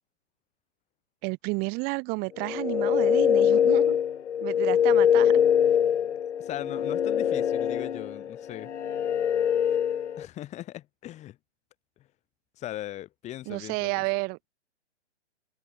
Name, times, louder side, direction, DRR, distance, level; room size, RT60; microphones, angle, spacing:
voice 1, 1.2-4.0 4.4-5.3 13.5-14.5, right 30 dB, 25° right, 3.0 m, -31 dB
sound 1, 2.4-10.3, left 9 dB, 75° left, 0.7 m, -24 dB
voice 2, 6.4-8.7 10.2-11.4 12.6-14.0, left 14 dB, 20° left, 4.9 m, -39 dB
figure-of-eight pair, 130°, 35 cm